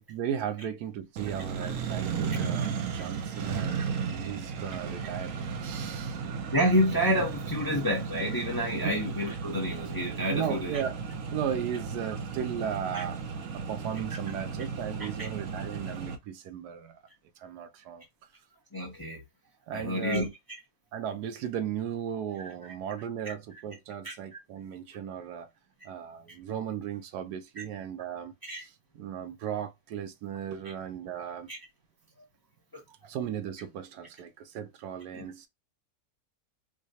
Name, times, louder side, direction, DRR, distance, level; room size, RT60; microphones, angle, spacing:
voice 1, 0.0-5.3 5.6-6.2 8.8-9.0 10.3-11.0 11.3-17.0 17.4-18.0 19.7-20.3 20.9-25.5 25.8-31.5 33.0-35.5, right 9 dB, 80° right, 1.2 m, -36 dB
Accelerating revving vroom, 1.2-16.2, right 6 dB, 60° right, 0.9 m, -35 dB
voice 2, 6.5-10.8 12.9-13.0 15.2-15.3 18.7-19.2 19.7-20.3 23.2-23.3 24.0-24.1 27.6-27.7 28.4-28.6 31.5-31.6 32.7-32.8 35.1-35.2, equal, 20° left, 0.6 m, -29 dB
4.7 x 2.2 x 2.7 m
omnidirectional pair, 1.7 m